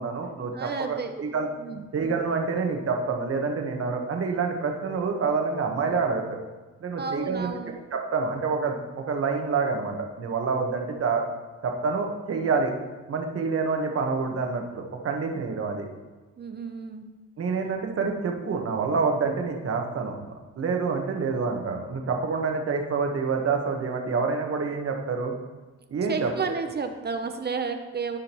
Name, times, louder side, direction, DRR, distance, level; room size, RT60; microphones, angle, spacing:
voice 1, 0.0-1.5 1.9-6.2 6.8-7.5 7.9-11.2 11.6-12.7 13.1-15.9 17.4-20.1 20.6-25.4 25.9-26.3, right 4 dB, 50° right, 3 dB, 1.3 m, -27 dB
voice 2, 0.5-1.1 1.6-1.8 7.0-7.7 16.4-17.0 26.1-28.2, right 5 dB, 35° right, 6 dB, 0.7 m, -32 dB
14.0 x 5.1 x 3.0 m, 1.2 s
cardioid pair, 90°, 30 cm